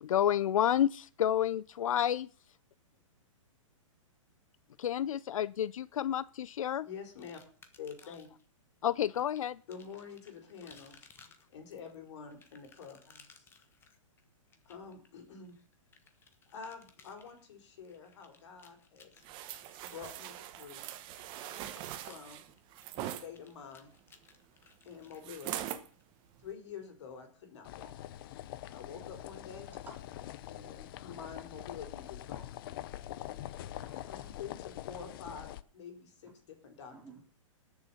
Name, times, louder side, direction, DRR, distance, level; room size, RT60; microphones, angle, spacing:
voice 1, 0.0-2.3 4.8-6.9 8.8-9.6, left 10 dB, 80° left, 19 dB, 0.5 m, -30 dB
voice 2, 6.8-7.4 7.8-8.3 9.7-11.1 11.5-13.4 14.7-15.6 16.5-19.1 19.8-20.9 22.1-22.5 23.0-23.9 24.8-25.7 26.4-27.9 28.7-29.7 30.5-32.6 34.1-36.9, left 6 dB, 60° left, 5 dB, 4.3 m, -47 dB
sound 1, 7.2-8.5 9.1-26.0, left 5 dB, 15° left, 1.3 m, -62 dB
sound 2, 19.2-23.3 25.2-25.9 26.4-26.5, right 12 dB, 30° right, 1.2 m, -42 dB
sound 3, 27.6-35.6, left 13 dB, 45° left, 0.7 m, -44 dB
voice 3, 29.6-30.0 33.7-34.3 36.9-37.2, right 4 dB, 10° right, -1 dB, 3.9 m, -54 dB
19.0 x 7.1 x 5.6 m, 0.42 s
hypercardioid pair, 150°, 17 cm